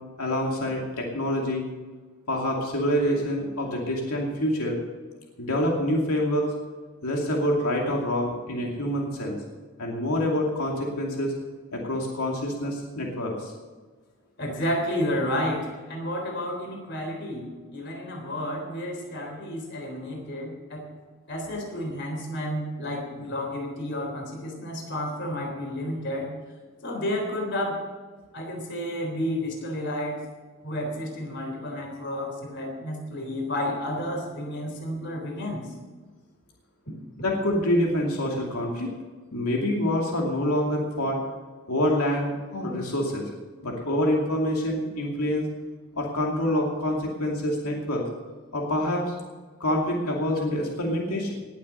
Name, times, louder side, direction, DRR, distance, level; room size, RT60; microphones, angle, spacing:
voice 1, 0.2-1.6 2.3-4.8 5.4-6.5 7.0-9.4 9.8-11.3 11.7-13.5 37.2-38.9 39.3-41.2 41.7-43.3 43.6-45.5 46.0-48.0 48.5-49.1 49.6-51.3, left 1 dB, 90° left, -1 dB, 2.5 m, -26 dB
voice 2, 14.4-20.9 21.3-26.3 26.8-27.8 28.3-30.2 30.6-35.7, left 1 dB, 50° left, 1 dB, 3.6 m, -31 dB
19.5 x 7.7 x 6.7 m, 1.4 s
head